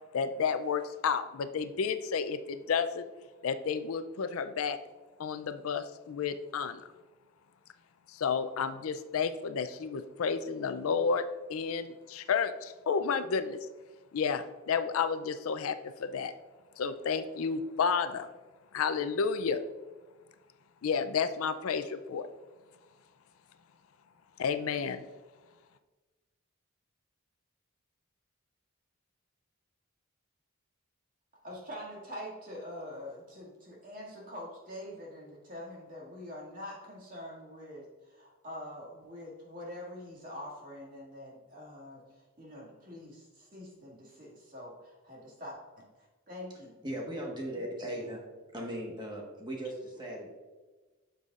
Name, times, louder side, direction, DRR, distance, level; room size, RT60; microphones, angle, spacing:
voice 1, 0.1-3.1 3.4-4.8 5.2-6.8 8.1-11.2 11.5-13.6 14.1-16.3 16.8-18.3 18.7-19.6 20.8-22.3 24.4-25.1, left 6 dB, 80° left, 11 dB, 0.4 m, -31 dB
voice 2, 31.4-46.7 47.9-48.2, left 1 dB, 40° right, -4 dB, 2.1 m, -45 dB
voice 3, 46.8-48.2 48.5-50.3, right 1 dB, 20° right, -1 dB, 1.3 m, -38 dB
9.3 x 6.7 x 2.4 m, 1.2 s
head